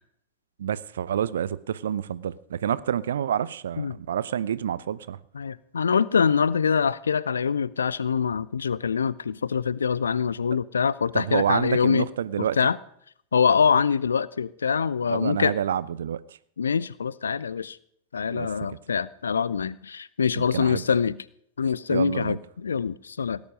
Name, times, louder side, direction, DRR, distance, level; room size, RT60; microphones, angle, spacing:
voice 1, 0.6-5.2 11.1-12.6 15.1-16.2 18.3-18.5 20.4-20.8 21.9-22.4, right 9 dB, 65° right, 0.6 m, -28 dB
voice 2, 5.3-12.1 12.4-12.8 13.3-15.5 16.6-17.8 18.1-21.2 21.6-23.4, left 6 dB, 70° left, 0.5 m, -24 dB
18.5 x 10.5 x 5.2 m
figure-of-eight pair, 90°, 0 cm